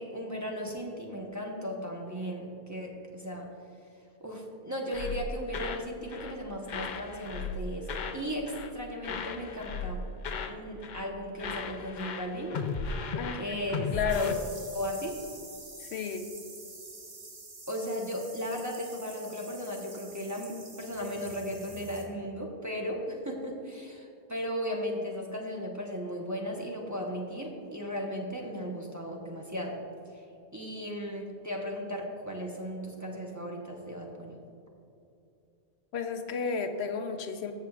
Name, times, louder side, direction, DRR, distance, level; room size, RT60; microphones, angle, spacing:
voice 1, 0.0-3.5 4.2-10.1 10.5-12.6 13.4-14.4 14.7-15.1 17.7-29.8 30.1-30.2 30.5-34.3, equal, 15° right, -2 dB, 0.9 m, -36 dB
sound 1, 4.9-5.9 6.1-6.4 6.7-8.2 8.5-8.8 9.0-10.6 10.8-11.1 11.4-14.3, left 4 dB, 55° left, 0.6 m, -36 dB
voice 2, 13.1-13.6 13.9-14.4 15.8-16.3 35.9-37.5, left 6 dB, 75° left, 6 dB, 0.9 m, -32 dB
sound 2, 14.1-22.0, right 3 dB, 45° right, 1.2 m, -47 dB
14.5 x 6.6 x 2.4 m, 2.7 s
omnidirectional pair, 1.1 m